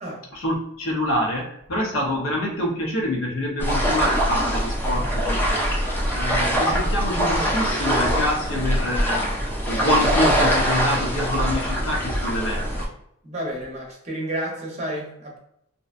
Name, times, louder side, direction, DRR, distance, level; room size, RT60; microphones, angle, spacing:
voice 1, 0.3-5.6 6.1-9.2 9.7-12.9, left 1 dB, 70° left, -1 dB, 0.7 m, -26 dB
sound 1, 3.6-12.9, equal, 10° left, 0.5 m, -23 dB
voice 2, 13.2-15.4, right 1 dB, 30° right, -2 dB, 0.7 m, -31 dB
2.7 x 2.2 x 2.4 m, 0.75 s
head